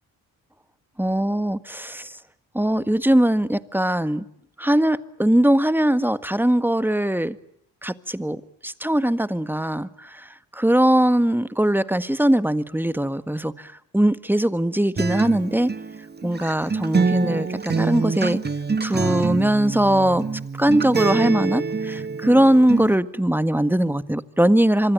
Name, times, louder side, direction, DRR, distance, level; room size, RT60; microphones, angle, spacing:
voice 1, 1.0-2.1 2.5-4.2 4.6-7.4 7.8-15.7 16.2-18.4 18.8-20.2 20.6-24.9, right 1 dB, 5° right, 13 dB, 1.6 m, -21 dB
Acoustic guitar, 15.0-22.9, right 4 dB, 20° right, 1.2 m, -26 dB
25.5 x 25.0 x 9.0 m, 0.73 s
hypercardioid pair, 45°, 46 cm